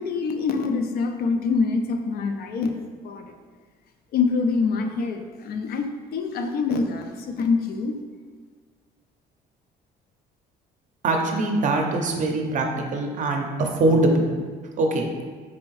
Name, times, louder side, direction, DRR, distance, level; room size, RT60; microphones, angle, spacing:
voice 1, 0.0-2.7 3.0-3.3 4.1-8.0, left 4 dB, 65° left, 5 dB, 0.4 m, -25 dB
voice 2, 11.0-14.3 14.8-15.1, right 2 dB, 50° right, 3 dB, 0.6 m, -22 dB
4.1 x 2.7 x 3.0 m, 1.5 s
cardioid pair, 110°, 17 cm